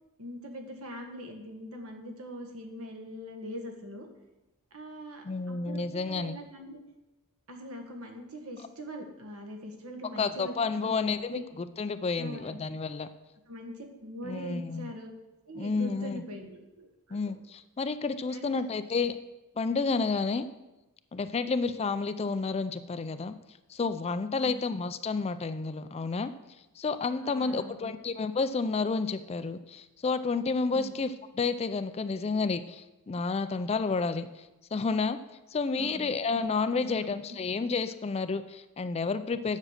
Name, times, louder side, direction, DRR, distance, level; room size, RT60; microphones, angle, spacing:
voice 1, 0.2-4.1 4.7-6.8 7.5-11.4 12.1-12.6 13.5-15.1 15.5-17.2 18.3-18.6 24.3-24.6 27.2-27.9 30.7-30.9 35.8-36.1 36.7-37.1, equal, 70° right, 3 dB, 1.6 m, -42 dB
voice 2, 5.2-6.4 10.2-13.1 14.2-14.9 15.6-16.2 17.1-19.2 19.6-20.5 21.1-23.4 23.7-26.3 26.8-35.2 35.5-39.6, left 4 dB, 30° left, 11 dB, 0.4 m, -30 dB
7.5 x 7.4 x 6.5 m, 1.0 s
head